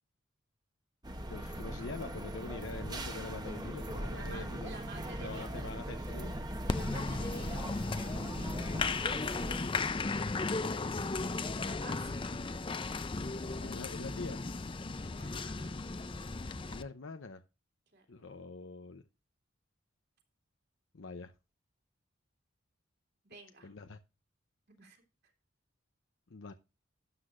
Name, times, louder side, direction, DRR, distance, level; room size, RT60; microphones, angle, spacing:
sound 1, 1.0-9.6, right 1 dB, 20° right, 1.1 m, -40 dB
voice 1, 1.3-4.7 5.2-6.3 8.6-9.0 13.2-14.4 16.7-17.4 18.1-19.0 20.9-21.3 23.6-24.0 26.3-26.5, left 3 dB, 70° left, 0.7 m, -45 dB
voice 2, 4.0-5.6 6.7-7.6 11.1-12.3 15.0-15.8 17.9-18.4 23.2-23.7 24.8-25.0, right 3 dB, 55° right, 3.0 m, -52 dB
Applause, 6.7-16.8, left 3 dB, 25° left, 0.5 m, -35 dB
12.5 x 7.8 x 2.5 m
head